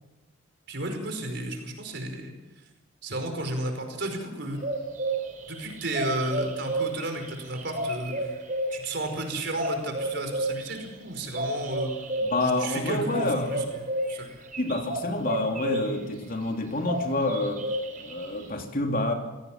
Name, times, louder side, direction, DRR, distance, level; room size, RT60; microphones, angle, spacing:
voice 1, 0.7-2.3 3.0-4.6 5.5-8.3 8.7-11.9 12.4-13.6 14.1-14.3, right 1 dB, 60° right, 5 dB, 5.1 m, -33 dB
sound 1, 4.6-16.1 16.3-18.5, right 1 dB, 40° right, 4.3 m, -32 dB
voice 2, 12.2-13.7 14.6-17.6 18.0-19.1, left 2 dB, 45° left, 3 dB, 3.0 m, -28 dB
27.0 x 17.5 x 7.5 m, 1.1 s
head